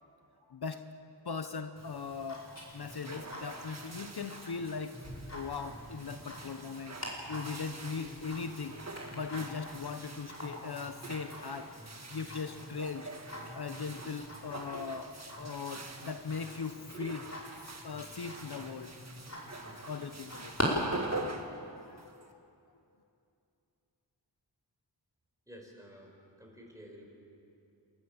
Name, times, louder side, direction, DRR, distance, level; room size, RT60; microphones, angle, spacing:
voice 1, 0.5-0.8 1.2-2.5 2.7-5.0 5.3-7.0 7.3-8.8 9.1-11.7 12.1-13.1 13.5-17.2 17.8-18.9 19.8-20.5 21.9-22.1, left 5 dB, 65° left, 8 dB, 0.9 m, -39 dB
Tick-tock, 1.8-20.6, left 1 dB, 40° left, 5.0 m, -45 dB
sound 1, 2.7-22.3, right 2 dB, 40° right, 1.6 m, -46 dB
voice 2, 25.5-27.1, equal, 10° right, 0 dB, 4.9 m, -52 dB
29.5 x 13.5 x 7.3 m, 2.7 s
wide cardioid pair, 65°, 42 cm